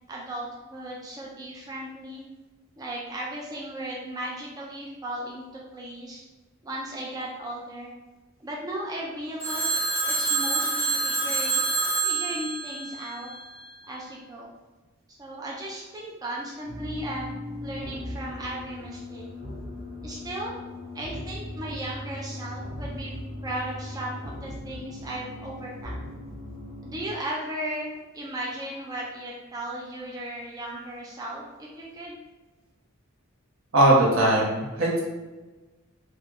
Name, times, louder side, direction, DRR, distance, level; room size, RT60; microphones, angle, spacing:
voice 1, 0.1-2.2 2.8-6.2 6.6-7.9 8.4-9.7 10.0-11.6 12.0-13.3 13.9-14.5 15.1-19.3 20.0-20.5 20.9-23.1 23.4-26.1 26.8-32.2, right 1 dB, 20° right, -3 dB, 0.3 m, -36 dB
Telephone, 9.4-13.6, right 3 dB, 25° left, 1.4 m, -27 dB
sound 1, 16.6-27.1, left 1 dB, 35° right, 1.4 m, -38 dB
voice 2, 33.7-35.0, right 1 dB, 70° right, -3 dB, 0.9 m, -20 dB
3.6 x 2.3 x 2.9 m, 1.2 s
head